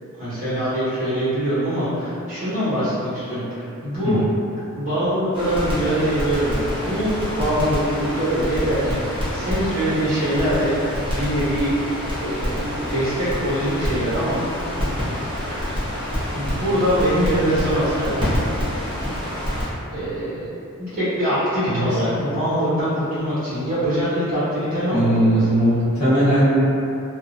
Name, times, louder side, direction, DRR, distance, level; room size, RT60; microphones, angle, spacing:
voice 1, 0.2-4.2 4.7-10.7 11.1-11.7 12.2-14.4 15.5-15.6 16.3-18.2 19.9-20.5 20.8-25.4, equal, 40° right, -13 dB, 1.2 m, -23 dB
Crackle, 5.3-19.7, equal, 25° right, 0.8 m, -27 dB
voice 2, 21.7-22.0 24.9-26.6, right 1 dB, 85° left, -10 dB, 0.9 m, -18 dB
2.6 x 2.0 x 2.5 m, 2.7 s
head